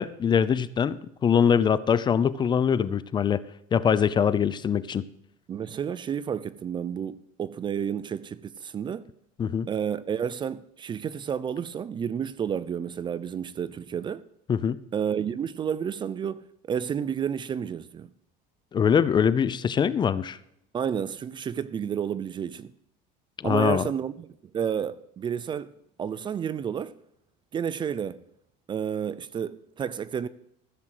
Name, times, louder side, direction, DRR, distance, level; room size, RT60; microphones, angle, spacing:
voice 1, 0.0-3.4 3.7-5.1 9.4-9.7 14.5-14.8 18.7-20.4 23.4-23.9, left 7 dB, 25° left, 0.6 m, -23 dB
voice 2, 5.5-9.1 9.7-14.2 14.9-18.1 20.7-22.7 23.4-24.3 24.5-25.7 26.0-27.0 27.5-28.2 28.7-30.3, right 8 dB, 25° right, 0.5 m, -31 dB
14.5 x 7.5 x 6.6 m
cardioid pair, 130°, 17 cm